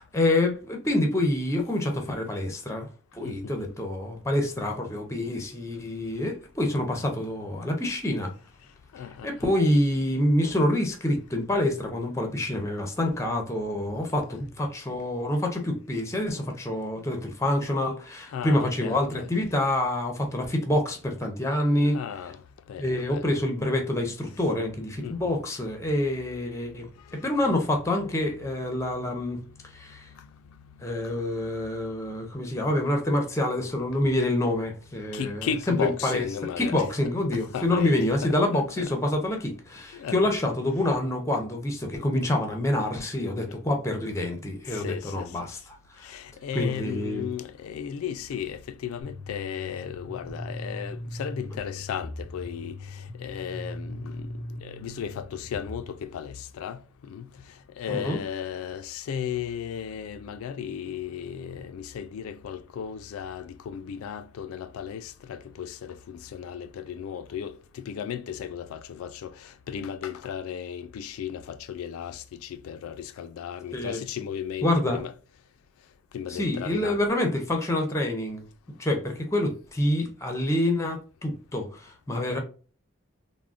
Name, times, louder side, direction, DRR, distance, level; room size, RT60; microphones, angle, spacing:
voice 1, 0.0-2.9 3.1-8.3 9.1-22.0 22.8-29.4 29.7-30.1 30.8-36.2 36.6-46.1 46.5-47.3 57.9-58.2 73.7-74.0 74.6-75.0 76.3-78.4 78.8-82.4, left 1 dB, 15° left, 0.5 m, -27 dB
voice 2, 3.2-3.5 8.9-9.3 14.0-14.1 18.3-19.3 21.8-22.4 22.7-23.4 25.0-25.2 30.2-30.3 35.1-36.7 37.3-38.8 39.9-40.2 44.7-45.3 46.0-54.3 54.6-57.3 57.8-75.1 76.1-77.0, left 8 dB, 85° left, 0.3 m, -35 dB
sound 1, 49.0-55.9, left 1 dB, 55° right, 0.8 m, -39 dB
3.5 x 2.0 x 2.4 m
head